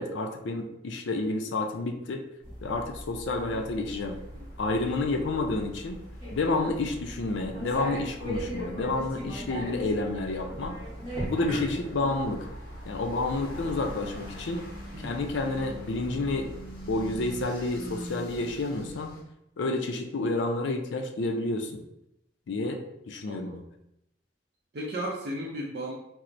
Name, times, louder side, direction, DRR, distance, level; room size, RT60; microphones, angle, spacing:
voice 1, 0.0-2.2 2.6-4.2 4.6-6.0 6.3-10.8 11.2-12.5 12.8-14.6 15.0-16.5 16.9-19.1 19.6-21.8 22.5-22.8 23.1-23.6, left 2 dB, 75° left, 4 dB, 0.4 m, -30 dB
sound 1, 2.4-17.4, equal, 30° left, 1.2 m, -40 dB
sound 2, 3.6-19.2, equal, 50° left, 0.8 m, -45 dB
voice 2, 23.3-23.6 24.7-25.9, right 1 dB, 55° right, -2 dB, 0.4 m, -36 dB
4.3 x 2.0 x 2.5 m, 0.82 s
head